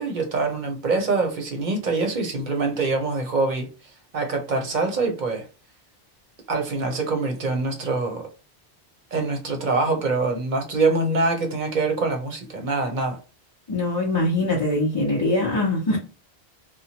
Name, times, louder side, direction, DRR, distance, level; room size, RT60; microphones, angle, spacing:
voice 1, 0.0-3.7 4.1-5.4 6.5-8.2 9.1-13.2, right 3 dB, 50° right, 0.8 m, -24 dB
voice 2, 13.7-16.0, left 2 dB, 30° left, 0.6 m, -22 dB
2.9 x 2.1 x 2.8 m
omnidirectional pair, 1.1 m